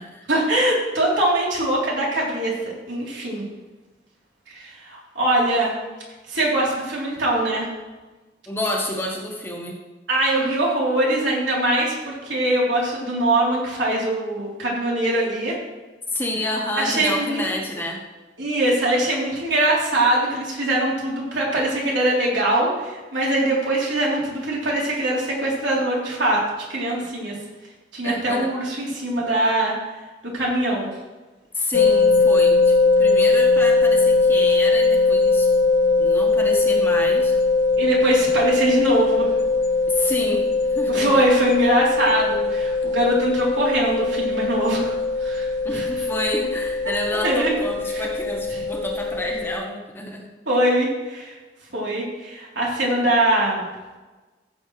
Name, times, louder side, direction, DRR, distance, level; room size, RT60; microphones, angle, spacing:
voice 1, 0.3-3.4 4.5-5.7 6.3-7.7 10.1-15.6 16.7-17.4 18.4-26.4 26.7-27.4 27.9-29.7 30.3-30.9 37.8-39.3 40.9-46.1 47.2-47.5 47.9-48.1 48.5-48.6 50.5-51.3 51.7-53.6, right 1 dB, 85° right, -4 dB, 3.5 m, -22 dB
voice 2, 8.5-9.8 16.1-18.0 28.0-28.5 31.5-35.5 36.0-37.3 39.9-41.2 45.6-50.3, left 1 dB, 10° left, 0 dB, 1.2 m, -29 dB
sound 1, 31.7-49.6, left 3 dB, 65° left, 0.7 m, -20 dB
15.0 x 7.2 x 3.2 m, 1.2 s
head